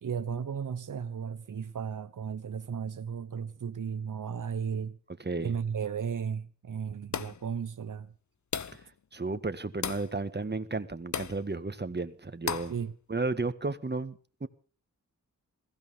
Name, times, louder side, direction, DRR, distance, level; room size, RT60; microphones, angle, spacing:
voice 1, 0.0-5.0 5.4-8.1 12.5-12.9, right 7 dB, 85° right, 1.0 m, -35 dB
sound 1, 7.1-7.5 8.5-8.9 9.8-10.1 11.1-11.4 12.5-12.8, left 7 dB, 70° left, 0.9 m, -35 dB
voice 2, 9.1-12.7 13.1-14.5, right 3 dB, 35° right, 1.7 m, -33 dB
21.5 x 15.5 x 3.6 m
cardioid pair, 50°, 31 cm